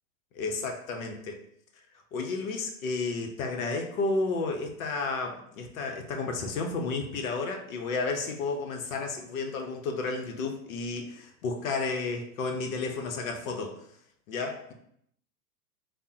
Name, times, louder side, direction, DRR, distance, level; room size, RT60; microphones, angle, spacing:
voice 1, 0.3-1.4 2.1-13.8 14.3-14.7, left 3 dB, 60° left, 3 dB, 0.8 m, -32 dB
3.5 x 2.1 x 2.7 m, 0.70 s
figure-of-eight pair, 95°, 45 cm